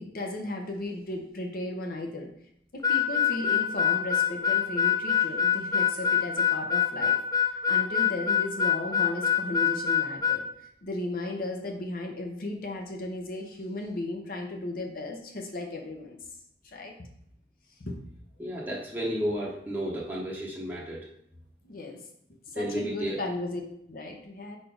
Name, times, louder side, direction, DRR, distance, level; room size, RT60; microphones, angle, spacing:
voice 1, 0.0-2.3 2.7-16.2 16.6-17.1 17.8-18.0 21.6-22.0 22.5-23.6 23.9-24.6, left 2 dB, 55° left, 1 dB, 0.9 m, -35 dB
Harmonica, 2.8-10.4, left 8 dB, 20° left, 0.4 m, -24 dB
voice 2, 18.4-21.1 22.5-23.2, equal, 10° right, -6 dB, 0.9 m, -32 dB
4.5 x 4.2 x 5.1 m, 0.73 s
head